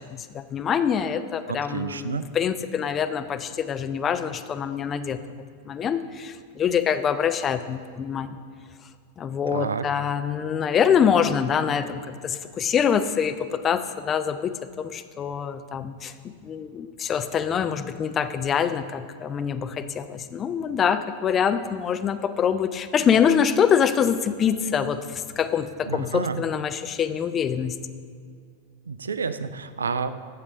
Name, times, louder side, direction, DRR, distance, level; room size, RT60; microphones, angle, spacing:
voice 1, 0.0-5.2 5.7-8.4 9.2-14.5 14.8-27.8, left 7 dB, 25° left, 11 dB, 0.4 m, -25 dB
voice 2, 1.5-2.3 9.5-9.9 25.9-26.4 28.9-30.1, right 5 dB, 70° right, 12 dB, 0.3 m, -29 dB
8.0 x 6.7 x 4.9 m, 2.2 s
figure-of-eight pair, 90°, 0 cm